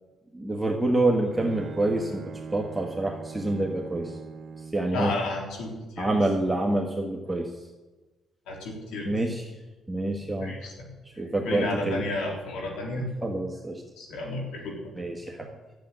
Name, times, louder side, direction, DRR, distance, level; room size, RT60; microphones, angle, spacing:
voice 1, 0.3-2.2 2.5-4.1 4.7-5.1 6.0-7.5 9.0-9.4 9.9-10.7 11.2-12.0 13.2-13.8 15.0-15.5, right 2 dB, 5° right, 0 dB, 1.5 m, -27 dB
Bowed string instrument, 0.8-5.0, right 5 dB, 45° right, 1.2 m, -41 dB
voice 2, 4.9-6.2 8.5-9.2 10.4-10.7 11.2-13.1 14.0-14.9, left 2 dB, 90° left, 0 dB, 3.6 m, -32 dB
12.0 x 7.7 x 8.9 m, 1.2 s
cardioid pair, 90°, 0 cm